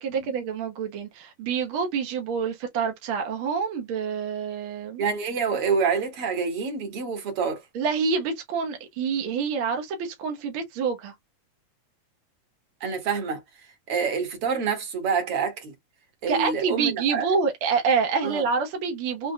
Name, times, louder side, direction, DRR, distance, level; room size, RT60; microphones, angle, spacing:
voice 1, 0.0-5.0 7.7-11.1 16.3-19.3, right 5 dB, 75° right, 1.2 m, -27 dB
voice 2, 5.0-7.6 12.8-13.4 13.9-15.7 16.2-17.3 18.2-18.4, right 5 dB, 50° right, 2.2 m, -27 dB
5.2 x 3.8 x 2.2 m
omnidirectional pair, 3.9 m